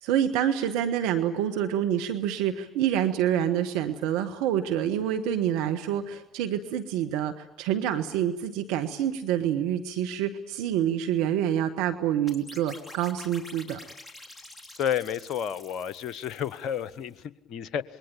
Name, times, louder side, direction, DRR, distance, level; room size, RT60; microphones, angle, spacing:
voice 1, 0.0-13.8, right 10 dB, 70° right, 7 dB, 1.3 m, -27 dB
sound 1, 12.3-17.1, left 2 dB, 15° left, 3.4 m, -48 dB
voice 2, 14.8-17.8, left 9 dB, 55° left, 15 dB, 1.1 m, -31 dB
26.5 x 22.0 x 8.7 m, 0.89 s
hypercardioid pair, 55°, 0 cm